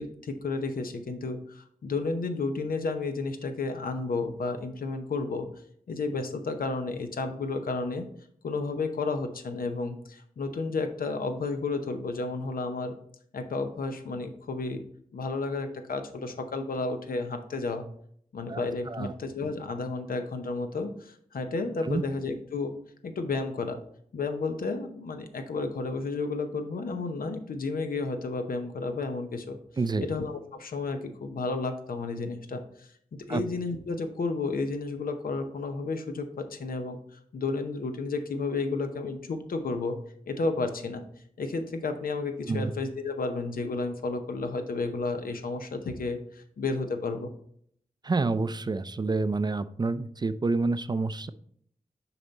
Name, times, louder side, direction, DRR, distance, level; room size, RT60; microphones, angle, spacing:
voice 1, 0.0-5.5 5.9-8.0 8.4-12.9 13.3-14.8 15.1-17.8 18.3-22.7 23.0-23.8 24.1-29.6 30.0-32.9 33.3-40.0 40.3-41.0 41.4-47.3, left 3 dB, 90° left, 7 dB, 0.7 m, -32 dB
voice 2, 29.8-30.1 33.3-33.4 42.5-42.7 48.0-51.3, right 3 dB, 30° right, 14 dB, 0.3 m, -28 dB
6.9 x 4.3 x 3.9 m, 0.66 s
wide cardioid pair, 90°, 14 cm